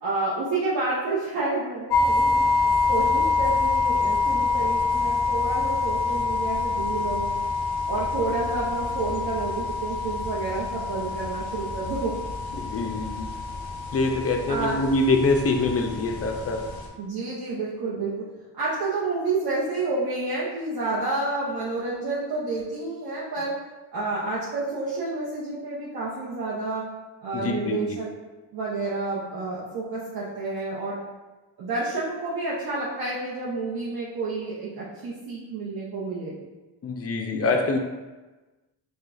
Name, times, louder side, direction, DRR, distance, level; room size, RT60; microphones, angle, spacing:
voice 1, 0.0-2.5 2.9-7.4 7.9-12.1 14.5-14.8 17.0-18.3 18.6-23.5 23.9-26.9 27.2-28.1 28.5-31.0 31.6-36.4, right 3 dB, 65° right, -7 dB, 0.8 m, -29 dB
sound 1, 1.9-16.9, left 3 dB, 65° left, 0.7 m, -26 dB
voice 2, 12.6-13.3 13.9-16.7 27.3-27.8 36.8-37.8, left 3 dB, 35° left, 4 dB, 0.5 m, -24 dB
4.7 x 2.3 x 2.5 m, 1.2 s
cardioid pair, 80°, 40 cm